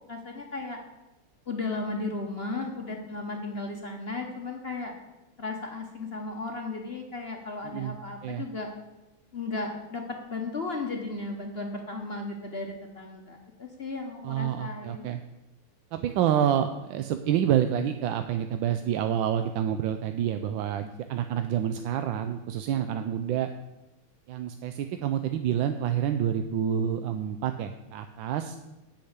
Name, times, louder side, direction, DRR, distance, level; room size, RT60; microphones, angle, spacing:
voice 1, 0.1-0.8 1.5-5.0 5.4-8.7 9.3-10.0 10.3-15.1, left 3 dB, 40° left, 2 dB, 0.9 m, -35 dB
voice 2, 7.6-8.0 8.2-8.4 14.2-15.2 15.9-23.5 24.3-28.6, right 9 dB, 75° right, 8 dB, 1.2 m, -28 dB
8.4 x 6.7 x 8.1 m, 1.0 s
omnidirectional pair, 2.4 m